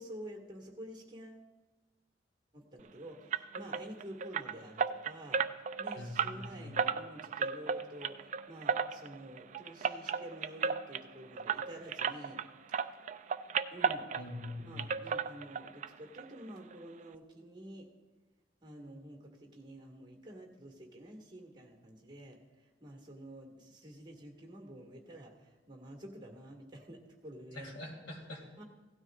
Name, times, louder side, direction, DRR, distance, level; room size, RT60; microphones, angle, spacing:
voice 1, 0.0-1.4 2.5-5.4 5.8-12.4 13.7-14.1 14.6-17.9 18.6-22.4 22.8-27.7 28.6-28.7, right 1 dB, 25° right, 1 dB, 1.8 m, -49 dB
sound 1, 3.3-12.5 12.7-14.5 14.8-15.9 16.1-16.3 16.7-16.8 17.1-17.2, right 6 dB, 40° right, 0.3 m, -34 dB
voice 2, 5.9-6.8 14.1-14.9 27.5-28.4, left 2 dB, 65° left, 1 dB, 2.2 m, -44 dB
16.5 x 12.5 x 2.5 m, 1.2 s
head